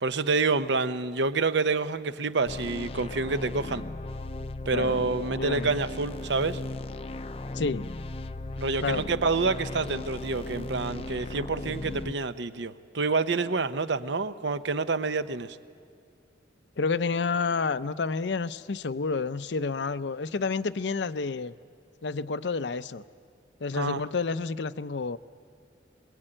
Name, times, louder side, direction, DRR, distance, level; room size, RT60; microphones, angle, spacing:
voice 1, 0.0-3.8 4.7-6.6 8.6-15.6 23.7-24.0, right 4 dB, 80° right, 12 dB, 0.8 m, -28 dB
sound 1, 2.4-12.1, left 2 dB, 30° left, 0.5 m, -37 dB
voice 2, 5.3-5.8 7.5-7.8 8.8-9.0 16.8-21.5 22.0-23.0 23.6-25.2, left 4 dB, 75° left, 14 dB, 0.6 m, -29 dB
22.0 x 21.5 x 8.9 m, 2.2 s
head